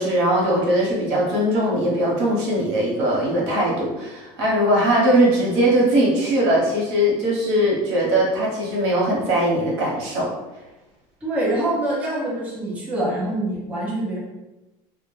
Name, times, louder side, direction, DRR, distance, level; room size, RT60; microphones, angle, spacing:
voice 1, 0.0-10.3, right 1 dB, 85° right, -4 dB, 0.9 m, -20 dB
voice 2, 11.2-14.2, right 1 dB, 10° right, -6 dB, 0.6 m, -25 dB
2.2 x 2.1 x 3.0 m, 1.0 s
cardioid pair, 175°, 14 cm